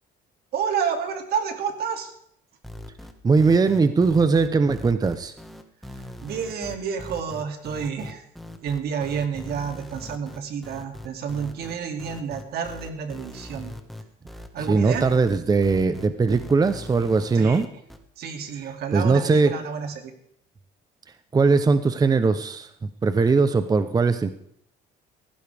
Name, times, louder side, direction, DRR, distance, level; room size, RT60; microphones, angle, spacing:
voice 1, 0.5-2.1 6.2-8.2 8.6-13.7 14.5-15.1 17.3-17.6 18.2-20.1, right 7 dB, 70° right, 5 dB, 2.6 m, -29 dB
sound 1, 2.6-18.0, left 1 dB, ahead, 1.6 m, -40 dB
voice 2, 3.2-5.3 14.7-17.7 18.9-19.5 21.3-24.3, right 4 dB, 20° right, 11 dB, 0.8 m, -20 dB
17.0 x 15.5 x 3.5 m, 0.69 s
cardioid pair, 110°, 17 cm